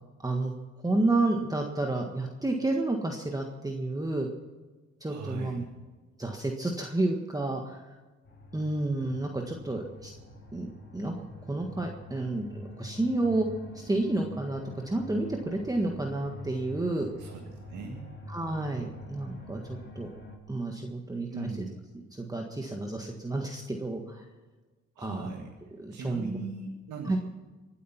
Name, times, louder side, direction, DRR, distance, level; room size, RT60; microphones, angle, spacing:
voice 1, 0.2-0.5 0.8-4.3 5.0-5.6 6.2-7.8 8.5-10.1 10.5-10.7 10.9-11.1 11.5-13.5 13.7-17.1 18.3-20.1 20.5-21.5 22.2-24.2 25.0-25.3 25.8-26.4 27.1-27.2, right 2 dB, 10° right, 2 dB, 1.6 m, -30 dB
voice 2, 5.0-5.7 17.2-18.1 21.3-21.8 25.0-25.5 25.9-27.2, right 3 dB, 85° right, 1 dB, 2.0 m, -39 dB
sound 1, 8.2-20.4, equal, 40° left, 5.0 m, -46 dB
24.5 x 8.6 x 5.9 m, 1.3 s
cardioid pair, 90°, 30 cm